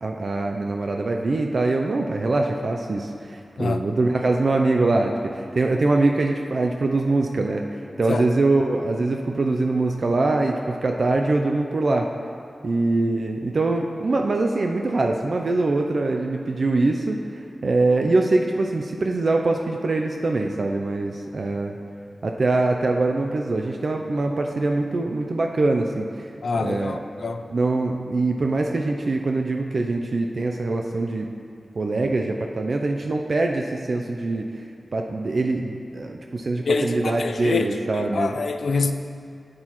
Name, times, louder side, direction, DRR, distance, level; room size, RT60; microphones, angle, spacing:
voice 1, 0.0-12.1 12.6-21.8 22.2-26.3 26.6-27.0 27.5-31.3 31.8-34.5 34.9-38.3, right 2 dB, 55° right, 2 dB, 0.4 m, -23 dB
voice 2, 26.4-27.5 36.7-38.9, left 4 dB, 70° left, 7 dB, 0.4 m, -25 dB
9.7 x 7.6 x 3.0 m, 2.4 s
wide cardioid pair, 115°, 0 cm